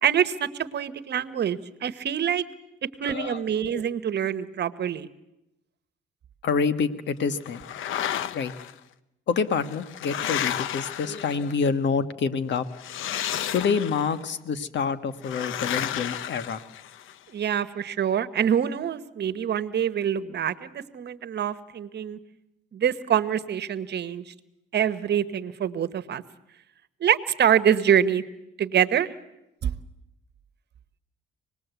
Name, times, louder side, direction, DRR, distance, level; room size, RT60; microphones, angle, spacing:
voice 1, 0.0-2.4 3.0-5.1 17.3-22.2 22.7-24.3 24.7-26.2 27.0-28.2 28.6-29.1 29.6-29.7, right 9 dB, 60° right, 15 dB, 1.2 m, -25 dB
voice 2, 3.0-3.9 6.4-7.6 8.3-8.5 9.3-12.6 13.5-16.6, left 5 dB, 65° left, 11 dB, 1.6 m, -27 dB
sound 1, 7.5-8.7 9.5-11.7 12.7-14.2 15.2-17.1, left 10 dB, 80° left, 0.9 m, -32 dB
26.0 x 20.0 x 8.2 m, 0.91 s
cardioid pair, 90°, 20 cm